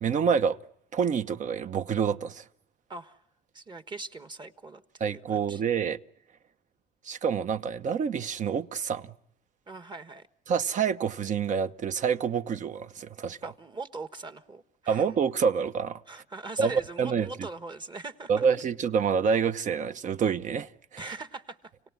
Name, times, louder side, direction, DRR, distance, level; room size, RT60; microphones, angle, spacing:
voice 1, 0.0-0.6 0.9-2.4 5.0-6.0 7.0-9.1 10.5-13.4 14.9-16.0 16.6-16.7 17.0-17.3 18.3-21.1, right 6 dB, 45° right, 1.0 m, -27 dB
voice 2, 2.9-3.2 3.5-5.6 9.7-10.3 13.4-15.0 16.1-18.5 21.0-21.7, right 3 dB, 25° right, 1.4 m, -41 dB
29.5 x 18.0 x 9.5 m
cardioid pair, 110°, 17 cm